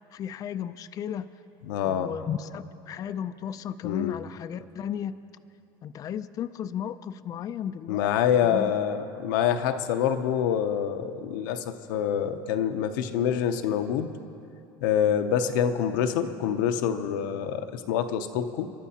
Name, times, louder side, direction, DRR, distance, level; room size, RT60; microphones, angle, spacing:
voice 1, 0.1-1.3 1.8-5.2 5.8-8.1 8.4-8.7, left 9 dB, 35° left, 10 dB, 0.4 m, -34 dB
voice 2, 1.7-2.1 3.8-4.2 7.9-14.1 14.8-18.7, left 8 dB, 90° left, 7 dB, 0.7 m, -26 dB
28.5 x 12.0 x 2.8 m, 2.7 s
supercardioid pair, 115°, 10 cm